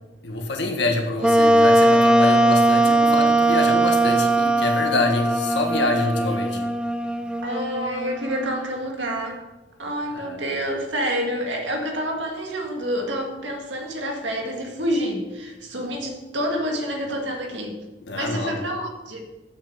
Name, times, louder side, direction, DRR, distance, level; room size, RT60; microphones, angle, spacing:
voice 1, 0.2-6.6 10.1-10.5 18.1-18.6, left 2 dB, 65° left, 3 dB, 1.6 m, -26 dB
Wind instrument woodwind instrument, 1.2-8.6, right 1 dB, 5° right, 0.4 m, -19 dB
voice 2, 7.4-9.4 9.8-17.8 18.2-19.2, equal, 70° right, 1 dB, 2.1 m, -28 dB
8.1 x 6.6 x 7.0 m, 1.1 s
head